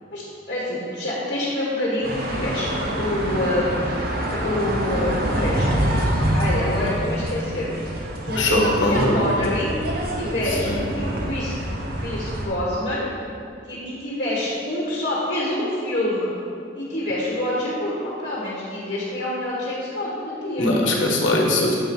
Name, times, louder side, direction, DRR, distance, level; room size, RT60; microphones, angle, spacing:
voice 1, 0.5-3.8 4.3-7.7 8.2-9.7 10.1-11.5 12.0-13.1 13.6-16.4 16.7-20.7, left 1 dB, 40° left, -7 dB, 1.4 m, -27 dB
sound 1, 2.0-12.5, right 1 dB, 50° right, 0.9 m, -25 dB
voice 2, 8.4-9.2 10.6-10.8 20.6-21.7, left 2 dB, 65° left, -1 dB, 1.2 m, -20 dB
7.4 x 4.5 x 5.3 m, 2.5 s
head